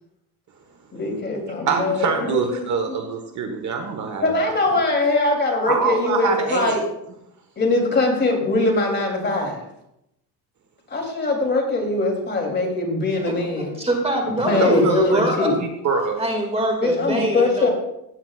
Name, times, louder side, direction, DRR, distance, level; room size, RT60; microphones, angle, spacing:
voice 1, 0.9-2.9 4.2-6.8 7.6-9.6 10.9-13.7 14.4-15.6 16.8-17.7, left 2 dB, 25° left, 0 dB, 3.1 m, -22 dB
voice 2, 1.7-4.3 5.7-6.8 14.6-15.2 15.8-16.2 16.6-16.7, right 5 dB, 45° right, 5 dB, 1.3 m, -24 dB
voice 3, 13.3-15.5 16.2-17.7, right 1 dB, 15° right, 2 dB, 2.1 m, -24 dB
16.0 x 8.9 x 2.4 m, 0.81 s
cardioid pair, 125°, 42 cm